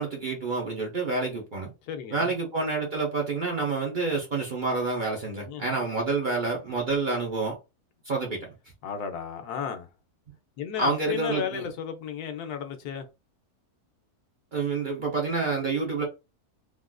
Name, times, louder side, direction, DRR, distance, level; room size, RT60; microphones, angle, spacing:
voice 1, 0.0-1.7 2.1-7.6 8.0-8.5 10.8-11.7 14.5-16.0, right 3 dB, 40° right, 0.7 m, -28 dB
voice 2, 1.8-2.3 5.5-5.9 8.8-9.9 10.6-13.0, left 7 dB, 90° left, 1.2 m, -34 dB
3.5 x 2.4 x 2.3 m
omnidirectional pair, 1.6 m